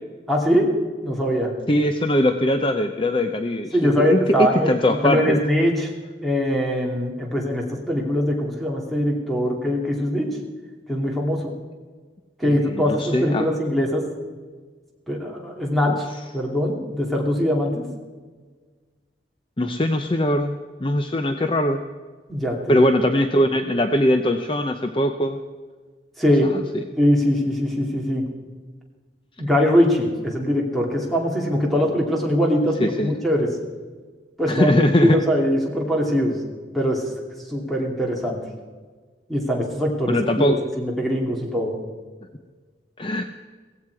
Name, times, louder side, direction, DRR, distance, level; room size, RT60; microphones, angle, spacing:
voice 1, 0.3-0.7 1.0-1.5 3.7-5.9 6.2-10.4 10.9-11.5 12.4-14.0 15.1-16.1 16.3-17.9 22.3-22.8 26.2-26.5 27.0-28.3 29.4-33.5 34.4-34.7 35.0-36.4 36.7-37.1 37.5-38.4 39.3-41.8, equal, ahead, -1 dB, 2.5 m, -22 dB
voice 2, 1.7-5.4 12.4-13.5 19.6-21.8 22.7-25.4 26.5-26.6 32.8-33.2 34.5-35.2 40.1-40.6 43.0-43.2, left 1 dB, 30° left, 7 dB, 0.6 m, -21 dB
17.0 x 15.5 x 4.7 m, 1.5 s
head